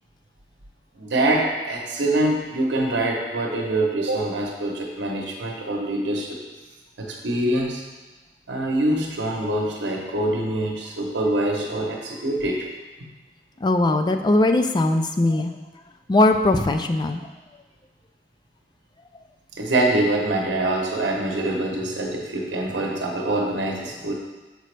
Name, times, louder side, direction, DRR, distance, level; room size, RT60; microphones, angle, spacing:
voice 1, 1.0-6.4 7.0-7.8 8.5-12.7 13.0-13.1 19.6-24.1, right 1 dB, 85° right, 0 dB, 0.9 m, -24 dB
voice 2, 13.6-15.5 16.1-17.2, left 2 dB, 25° left, 6 dB, 0.3 m, -20 dB
6.6 x 5.0 x 3.3 m, 1.2 s
head